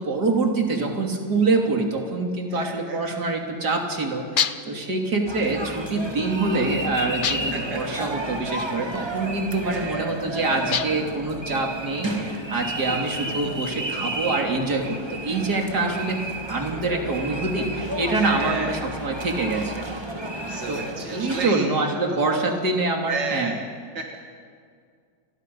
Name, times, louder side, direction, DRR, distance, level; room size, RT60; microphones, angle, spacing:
voice 1, 0.0-16.2 16.5-19.9 20.7-20.8 21.1-23.6, right 3 dB, 65° right, 1 dB, 3.5 m, -25 dB
voice 2, 2.5-3.0 7.5-8.2 9.0-9.1 9.6-10.2 15.8-16.0 18.1-18.9 20.4-21.7 22.5-22.6 23.1-23.7 24.0-24.2, right 4 dB, 85° right, 2 dB, 2.3 m, -33 dB
sound 1, 4.4-4.8 7.2-7.7 10.7-11.2, left 7 dB, 75° left, 0.4 m, -26 dB
sound 2, 5.3-21.5, right 1 dB, 15° right, 1.7 m, -32 dB
29.5 x 22.5 x 5.5 m, 2.1 s
omnidirectional pair, 1.9 m